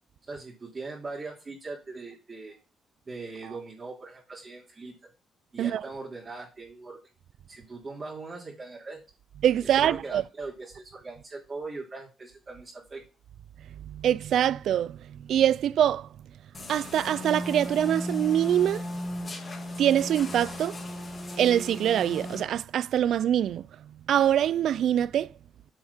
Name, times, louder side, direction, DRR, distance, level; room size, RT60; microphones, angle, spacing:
voice 1, 0.3-2.6 3.1-5.0 5.5-7.0 7.5-9.0 9.6-13.0, right 3 dB, 35° right, 3.1 m, -40 dB
voice 2, 9.4-10.2 13.8-16.1 16.7-18.8 19.8-20.8 21.4-23.7 24.1-25.3, right 10 dB, 70° right, 0.4 m, -24 dB
sound 1, 16.5-22.4, left 1 dB, 30° left, 2.8 m, -36 dB
9.0 x 4.8 x 5.6 m
cardioid pair, 90°, 0 cm